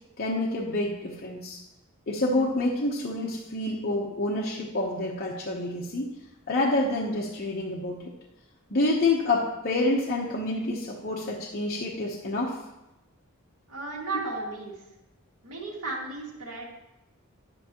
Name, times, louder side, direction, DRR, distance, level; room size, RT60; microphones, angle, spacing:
voice 1, 0.2-1.6 2.1-6.1 6.5-8.1 8.7-12.6 14.3-14.4, left 2 dB, 45° left, -4 dB, 1.0 m, -28 dB
voice 2, 13.7-14.8 15.4-16.7, right 3 dB, 75° right, -3 dB, 2.2 m, -35 dB
10.0 x 8.1 x 3.0 m, 0.95 s
head